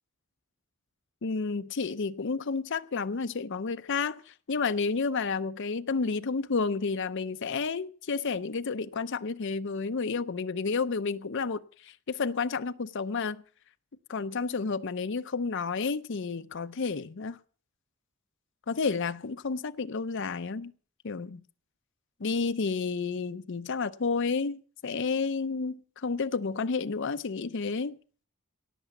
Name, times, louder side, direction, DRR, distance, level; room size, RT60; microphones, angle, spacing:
voice 1, 1.2-13.4 14.1-17.4 18.7-20.7 21.0-21.4 22.2-28.0, left 4 dB, 60° left, 0.6 m, -31 dB
18.0 x 6.9 x 8.2 m
head